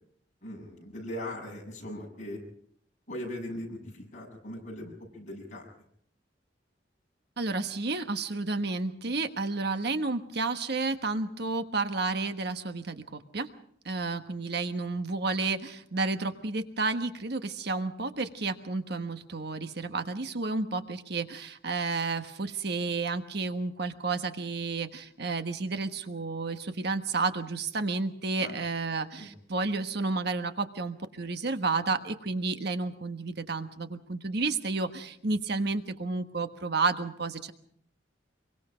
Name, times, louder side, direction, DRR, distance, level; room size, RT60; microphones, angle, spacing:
voice 1, 0.4-2.4 3.1-5.6 28.4-28.5 29.2-29.3, left 1 dB, 45° left, 0 dB, 7.3 m, -39 dB
voice 2, 7.4-13.5 13.8-37.5, right 3 dB, 60° right, 8 dB, 1.4 m, -31 dB
26.0 x 23.5 x 5.1 m, 0.65 s
head